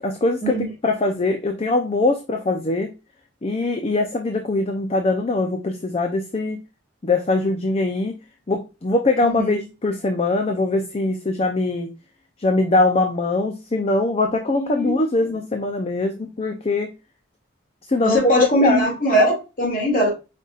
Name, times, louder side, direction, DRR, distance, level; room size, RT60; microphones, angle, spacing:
voice 1, 0.0-2.9 3.4-6.6 7.0-8.1 8.5-11.9 12.4-16.9 17.9-18.8, left 2 dB, 30° left, 5 dB, 0.5 m, -22 dB
voice 2, 9.2-9.5 14.5-15.0 18.0-20.1, equal, 45° left, -1 dB, 2.0 m, -20 dB
5.2 x 4.0 x 2.4 m, 0.28 s
head